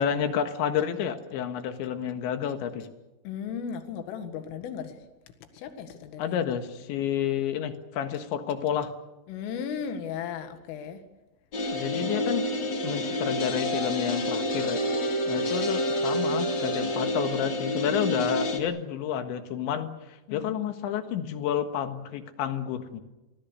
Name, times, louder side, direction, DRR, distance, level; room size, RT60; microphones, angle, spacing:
voice 1, 0.0-2.8 6.2-8.9 11.7-12.5 12.8-14.8 15.3-19.9 20.3-23.0, left 9 dB, 75° left, 8 dB, 3.7 m, -30 dB
voice 2, 3.2-5.0 5.5-6.4 9.3-11.0 20.3-20.6, left 7 dB, 90° left, 8 dB, 4.4 m, -36 dB
sound 1, 11.5-18.6, equal, 30° left, 2.3 m, -28 dB
29.5 x 21.5 x 6.8 m, 1.0 s
omnidirectional pair, 5.6 m